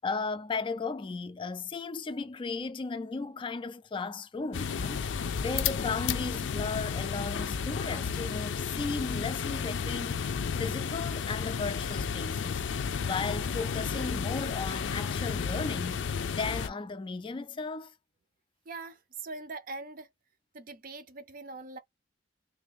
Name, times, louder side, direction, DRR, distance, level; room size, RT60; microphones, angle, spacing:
voice 1, 0.0-10.2 10.6-12.6 13.0-17.9, left 4 dB, 30° left, 0.3 m, -35 dB
sound 1, 4.5-16.7, left 6 dB, 90° left, 0.4 m, -32 dB
voice 2, 18.7-20.1 20.5-21.8, right 3 dB, 50° right, 0.6 m, -42 dB
3.4 x 2.5 x 3.4 m
head